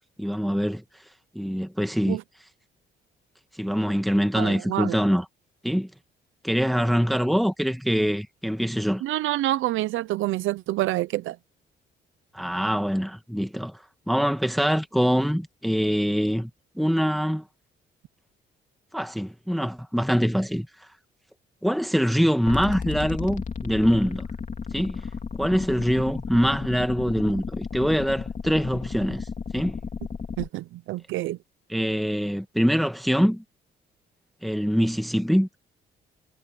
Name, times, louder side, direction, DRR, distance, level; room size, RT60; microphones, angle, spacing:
voice 1, 0.2-0.8 1.3-2.2 3.5-5.2 5.6-5.9 6.4-9.0 12.3-16.5 16.8-17.4 18.9-20.7 21.6-24.2 24.7-25.0 25.4-29.3 29.5-29.8 31.7-33.4 34.4-35.5, equal, ahead, 1.5 m, -24 dB
voice 2, 4.3-5.0 9.0-11.4 30.4-31.4, right 15 dB, 85° right, 0.6 m, -27 dB
sound 1, 22.5-30.5, left 5 dB, 40° left, 3.0 m, -33 dB
cardioid pair, 90°, 20 cm